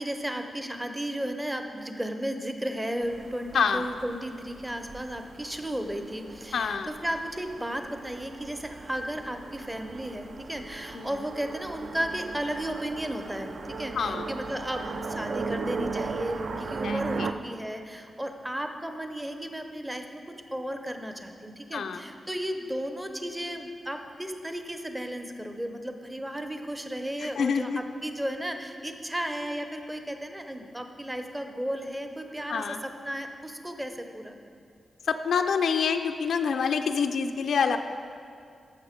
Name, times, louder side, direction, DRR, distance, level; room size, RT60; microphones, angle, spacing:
voice 1, 0.0-20.2 20.5-34.5, equal, 10° right, 6 dB, 0.6 m, -34 dB
sound 1, 3.0-17.3, right 4 dB, 55° right, 0.4 m, -38 dB
voice 2, 3.5-3.9 6.5-6.9 10.9-11.1 13.9-14.3 16.8-17.3 21.7-22.0 27.4-27.8 32.5-32.8 35.1-37.8, left 6 dB, 80° left, 6 dB, 0.5 m, -26 dB
13.0 x 6.8 x 5.1 m, 2.4 s
wide cardioid pair, 155°, 0 cm